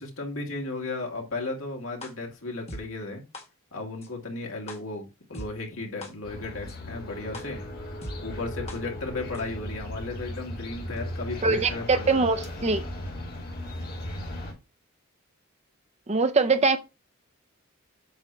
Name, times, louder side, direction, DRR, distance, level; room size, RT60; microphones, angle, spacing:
voice 1, 0.0-3.2 3.7-7.6 8.2-12.3, left 3 dB, 75° left, 2.2 m, -35 dB
sound 1, 2.0-2.1 2.7-2.8 3.3-3.4 4.0-4.1 4.7-4.8 5.3-5.5 6.0-6.1 6.7-6.8 7.3-7.4 8.0-8.1 8.7-8.8 9.3-9.4, left 1 dB, 30° left, 1.5 m, -38 dB
sound 2, 6.2-14.5, left 1 dB, 45° left, 2.2 m, -37 dB
voice 2, 11.4-12.8 16.1-16.8, right 3 dB, 30° right, 0.5 m, -23 dB
7.9 x 2.9 x 5.7 m
head